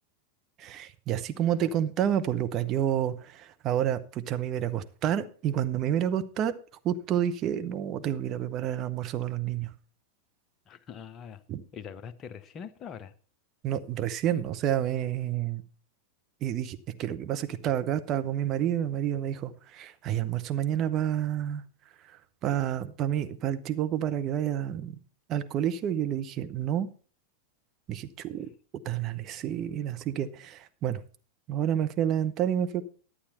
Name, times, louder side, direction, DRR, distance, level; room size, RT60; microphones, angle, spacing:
voice 1, 0.6-6.5 6.8-9.7 11.5-11.6 13.6-15.6 16.4-21.6 22.4-25.0 25.3-26.9 27.9-28.5 28.8-31.0 31.5-32.8, right 10 dB, 35° right, 0.8 m, -29 dB
voice 2, 10.7-11.4 11.7-13.1, left 7 dB, 30° left, 0.8 m, -43 dB
11.5 x 8.6 x 4.2 m
figure-of-eight pair, 90°, 0 cm